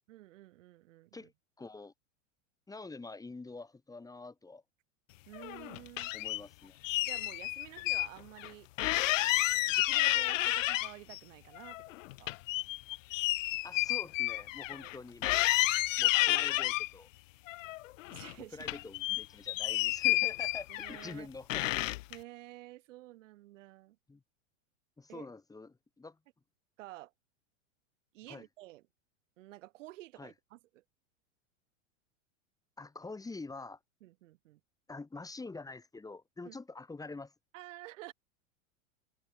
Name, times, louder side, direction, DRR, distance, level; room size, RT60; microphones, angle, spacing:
voice 1, 0.1-1.3 5.3-6.1 7.0-8.7 8.9-12.3 14.7-14.9 18.1-18.7 20.7-21.3 22.1-24.0 25.1-25.3 26.8-27.1 28.1-28.8 29.4-30.8 34.0-34.6 36.4-36.6 37.5-38.1, right 17 dB, 70° right, 2.7 m, -51 dB
voice 2, 1.6-1.9 2.7-4.6 6.1-6.8 13.6-15.4 16.0-17.1 18.4-21.6 24.1-24.2 25.0-26.2 28.3-28.4 30.2-30.3 32.8-33.8 34.9-37.3, left 3 dB, 10° left, 2.9 m, -46 dB
sound 1, 5.3-6.4 6.8-8.1 8.4-8.5 8.8-11.2 11.5-15.0 15.2-16.9 17.5-18.3 18.6-21.1 21.5-22.2, left 18 dB, 70° left, 0.7 m, -31 dB
supercardioid pair, 130°, 39 cm